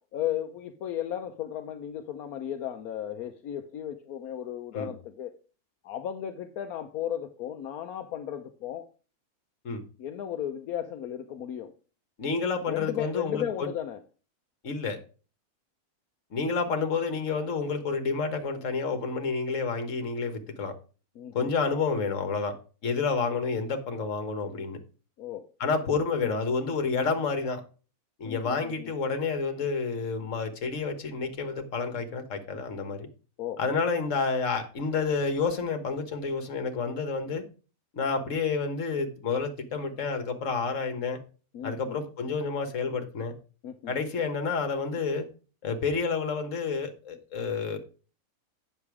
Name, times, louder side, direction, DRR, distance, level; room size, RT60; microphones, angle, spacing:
voice 1, 0.1-5.3 5.8-8.9 10.0-11.7 12.7-14.0 21.2-21.5 25.2-25.5 28.2-28.9 33.4-33.6 41.5-42.0 43.6-44.0, left 10 dB, 80° left, 1.2 m, -35 dB
voice 2, 12.2-13.7 14.6-15.0 16.3-20.7 21.3-22.6 22.8-24.8 25.6-27.6 28.2-33.1 33.6-37.4 37.9-41.2 41.6-43.3 43.9-45.3 45.6-47.8, left 4 dB, 60° left, 1.7 m, -29 dB
8.8 x 6.7 x 4.8 m
omnidirectional pair, 1.6 m